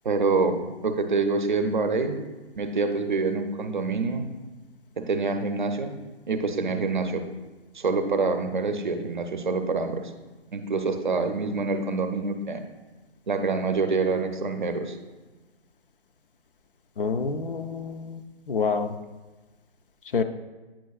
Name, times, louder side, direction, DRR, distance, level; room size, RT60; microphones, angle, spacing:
voice 1, 0.0-2.2 2.6-4.3 5.0-6.0 6.3-7.2 7.7-10.0 10.5-12.6 13.3-15.0, right 4 dB, 50° right, 7 dB, 0.5 m, -26 dB
voice 2, 17.0-18.2 18.5-18.9 20.1-20.2, left 5 dB, 55° left, 8 dB, 0.4 m, -27 dB
8.8 x 5.6 x 2.3 m, 1.2 s
hypercardioid pair, 175°, 32 cm